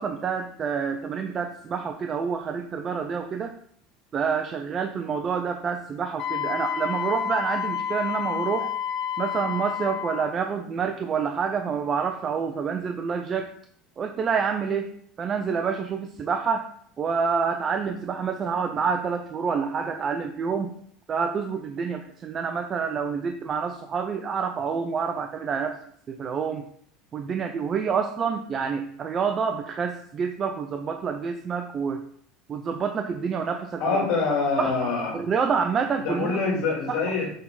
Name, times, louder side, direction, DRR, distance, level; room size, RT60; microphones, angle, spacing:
voice 1, 0.0-3.5 4.1-8.7 9.2-13.5 14.0-14.9 15.2-16.7 17.0-20.7 21.1-25.8 26.1-26.7 27.1-32.0 32.5-34.0 34.6-36.4 36.9-37.0, right 6 dB, 30° right, 5 dB, 0.6 m, -28 dB
Wind instrument woodwind instrument, 6.2-10.3, left 8 dB, 45° left, 0.7 m, -29 dB
voice 2, 33.8-35.2 36.0-37.3, left 4 dB, 70° left, -1 dB, 2.8 m, -25 dB
6.5 x 5.8 x 3.9 m, 0.62 s
supercardioid pair, 135°, 0 cm